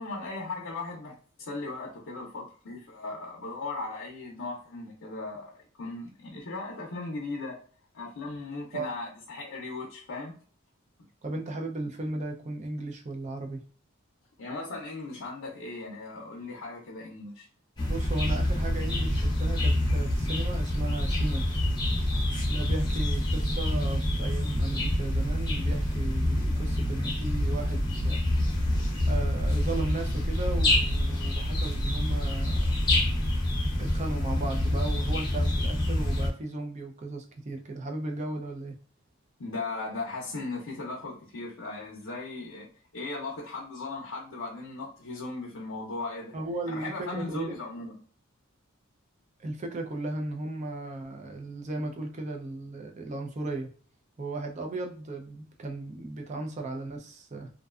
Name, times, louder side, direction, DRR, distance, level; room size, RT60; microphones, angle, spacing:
voice 1, 0.0-7.6 7.9-10.4 14.4-17.5 17.8-17.9 39.4-46.3 46.7-48.0, left 3 dB, 70° left, -2 dB, 0.5 m, -37 dB
voice 2, 11.2-13.7 17.9-21.6 22.5-28.2 29.1-32.8 33.8-38.8 46.3-47.6 49.4-53.7 54.2-57.5, right 2 dB, 35° right, 3 dB, 0.4 m, -36 dB
sound 1, 17.8-36.3, left 1 dB, 20° left, 0.7 m, -27 dB
2.5 x 2.2 x 2.3 m, 0.43 s
head